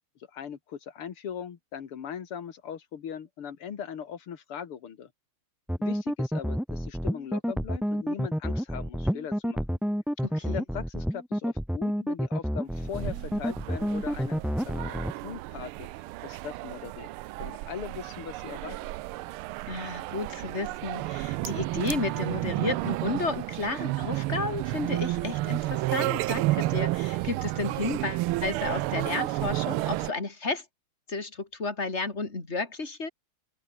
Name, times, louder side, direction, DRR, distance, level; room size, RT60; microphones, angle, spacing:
voice 1, 0.3-5.1 5.8-9.8 10.4-15.9 16.2-17.1 17.4-18.9, left 8 dB, 85° left, 2.7 m, -40 dB
sound 1, 5.7-15.1, equal, ahead, 2.0 m, -29 dB
voice 2, 10.2-10.6 19.7-30.6 31.1-33.1, left 3 dB, 30° left, 3.9 m, -32 dB
sound 2, 12.8-30.1, right 18 dB, 80° right, 1.5 m, -31 dB
omnidirectional pair, 2.4 m